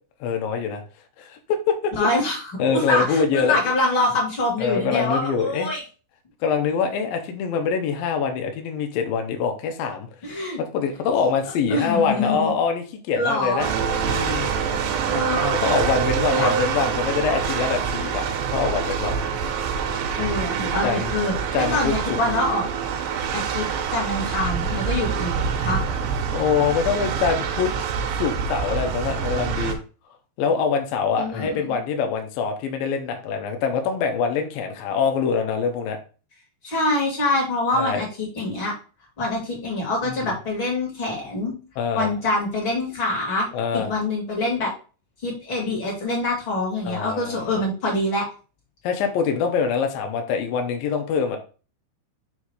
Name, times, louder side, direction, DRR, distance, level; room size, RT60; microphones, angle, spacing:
voice 1, 0.2-0.8 1.2-1.4 1.7-1.9 2.6-3.6 4.6-5.7 6.4-10.1 10.6-13.7 14.0-14.5 15.5-19.2 20.8-21.1 21.5-22.2 26.3-27.7 28.2-29.8 30.4-36.0 37.7-38.0 40.0-40.2 41.8-42.1 43.5-43.9 46.9-47.6 48.8-51.4, left 6 dB, 85° left, 4 dB, 2.1 m, -24 dB
voice 2, 2.0-5.8 10.2-10.6 11.7-12.5 13.1-13.6 14.7-15.8 16.3-16.5 20.2-21.3 21.7-22.6 23.3-25.3 25.6-25.8 31.2-31.6 36.6-38.7 39.2-41.5 41.9-43.5 43.7-44.7 45.2-48.2, left 2 dB, 30° left, -4 dB, 2.7 m, -25 dB
sound 1, 13.6-29.7, right 7 dB, 75° right, 3.0 m, -26 dB
7.1 x 3.7 x 4.8 m, 0.36 s
omnidirectional pair, 5.4 m